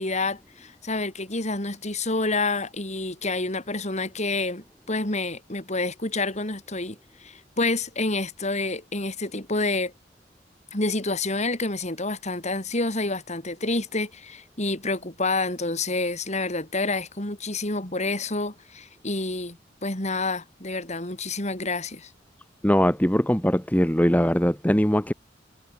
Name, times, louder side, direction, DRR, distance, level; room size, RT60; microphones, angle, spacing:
voice 1, 0.0-9.9 10.7-22.1, left 2 dB, 35° left, 5.0 m, -28 dB
voice 2, 22.6-25.1, equal, 10° left, 1.8 m, -21 dB
head